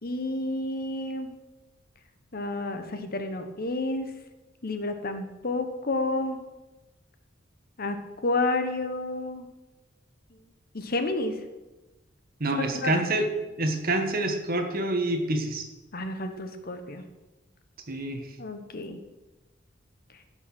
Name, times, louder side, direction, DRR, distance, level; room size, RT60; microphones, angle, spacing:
voice 1, 0.0-1.3 2.3-4.1 4.6-6.4 7.8-9.5 10.7-11.3 12.6-12.9 15.9-17.0 18.4-19.0, left 2 dB, 50° left, 8 dB, 1.1 m, -30 dB
voice 2, 12.4-13.3 13.6-15.6 17.9-18.2, right 2 dB, 50° right, 5 dB, 1.5 m, -27 dB
16.0 x 6.1 x 6.1 m, 1.1 s
head